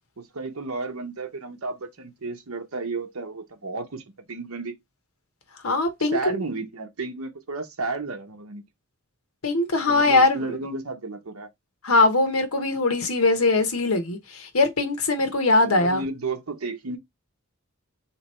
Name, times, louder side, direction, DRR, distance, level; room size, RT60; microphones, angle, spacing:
voice 1, 0.2-4.0 4.3-4.7 6.1-8.6 9.9-11.5 15.6-17.0, right 3 dB, 70° right, 0.8 m, -32 dB
voice 2, 5.6-6.4 9.4-10.6 11.8-16.0, left 2 dB, 75° left, 1.0 m, -21 dB
3.3 x 3.0 x 4.2 m
head